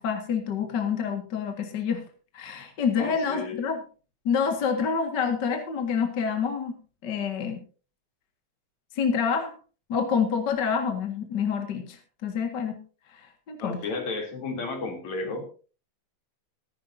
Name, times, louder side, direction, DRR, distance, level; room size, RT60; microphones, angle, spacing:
voice 1, 0.0-2.0 2.3-3.8 4.3-6.8 7.0-7.6 9.0-9.5 9.9-12.8 13.1-13.8, left 6 dB, 40° left, 4 dB, 2.1 m, -27 dB
voice 2, 3.0-3.6 13.6-15.4, left 3 dB, 65° left, 3 dB, 4.4 m, -33 dB
15.5 x 15.0 x 2.7 m, 0.35 s
omnidirectional pair, 3.5 m